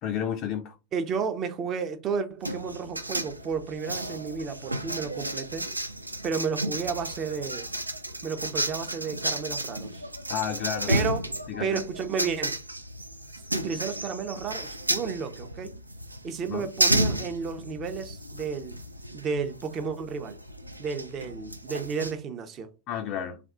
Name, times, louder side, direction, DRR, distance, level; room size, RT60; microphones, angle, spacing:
voice 1, 0.0-0.7 10.3-10.9 11.5-11.8 16.5-16.7 22.9-23.4, left 9 dB, 35° left, 0.4 m, -31 dB
voice 2, 0.9-5.7 6.2-7.7 8.2-10.0 10.9-11.2 11.6-12.6 13.5-15.8 16.2-18.8 19.1-20.4 20.8-22.7, right 5 dB, 30° right, 0.6 m, -32 dB
sound 1, 2.4-22.1, right 1 dB, 85° right, 0.4 m, -32 dB
3.4 x 2.3 x 3.7 m
figure-of-eight pair, 90°, 0 cm